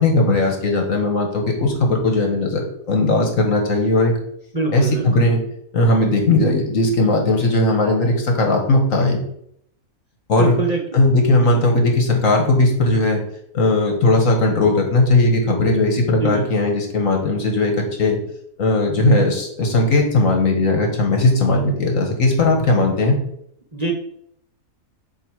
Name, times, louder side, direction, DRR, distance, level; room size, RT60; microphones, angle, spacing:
voice 1, 0.0-4.1 4.7-5.4 5.7-9.2 10.3-10.6 10.9-13.2 13.5-18.2 18.6-23.2, left 2 dB, 65° left, 2 dB, 1.8 m, -17 dB
voice 2, 4.5-5.3 10.4-10.8 11.5-11.6 16.2-16.4 20.8-20.9 23.7-23.9, right 3 dB, 30° right, 1 dB, 1.0 m, -24 dB
7.7 x 3.3 x 6.4 m, 0.70 s
omnidirectional pair, 1.5 m